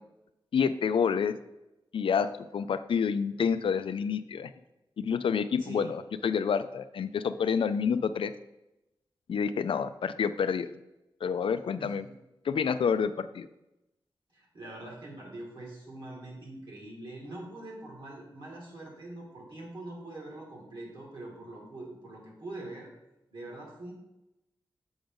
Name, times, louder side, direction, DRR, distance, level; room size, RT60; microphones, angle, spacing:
voice 1, 0.5-1.4 1.9-4.5 5.0-8.3 9.3-10.7 11.2-12.0 12.4-13.5, left 6 dB, 90° left, 12 dB, 0.4 m, -28 dB
voice 2, 5.6-5.9 11.8-12.1 14.3-22.9 23.3-23.9, right 2 dB, 60° right, -3 dB, 2.1 m, -43 dB
7.0 x 5.0 x 3.7 m, 0.93 s
wide cardioid pair, 105°, 9 cm